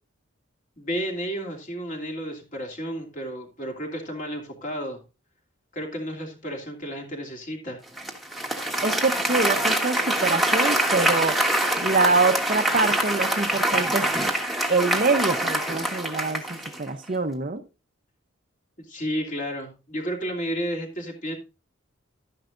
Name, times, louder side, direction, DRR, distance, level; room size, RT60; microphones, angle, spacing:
voice 1, 0.8-5.0 5.7-7.8 18.8-21.4, equal, 40° left, 2.8 m, -32 dB
Applause, 8.0-16.9, right 1 dB, ahead, 1.3 m, -24 dB
voice 2, 8.8-11.4 11.8-14.1 14.7-17.6, right 3 dB, 40° right, 0.7 m, -25 dB
12.0 x 10.5 x 2.5 m
head